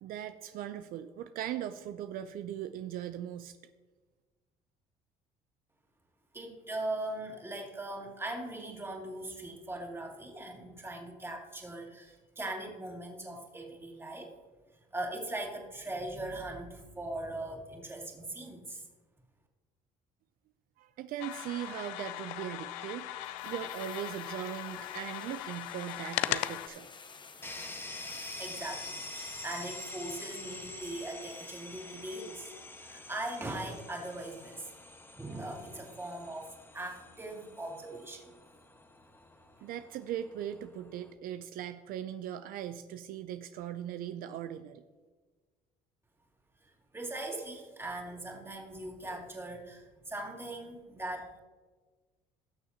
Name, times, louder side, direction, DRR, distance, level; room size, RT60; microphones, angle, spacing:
voice 1, 0.0-3.6 20.8-26.9 39.6-44.8, right 11 dB, 65° right, 10 dB, 0.5 m, -39 dB
voice 2, 6.3-14.3 14.7-18.8 28.4-32.5 32.8-34.7 35.1-38.3 46.6-51.4, right 1 dB, 15° right, 0 dB, 2.5 m, -40 dB
sound 1, 21.2-26.7, left 14 dB, 90° left, 0.5 m, -38 dB
sound 2, 23.2-30.5 30.8-30.9, left 5 dB, 30° left, 0.9 m, -52 dB
sound 3, 27.4-41.1, left 2 dB, 15° left, 1.3 m, -47 dB
18.5 x 6.6 x 2.9 m, 1.4 s
supercardioid pair, 80°, 16 cm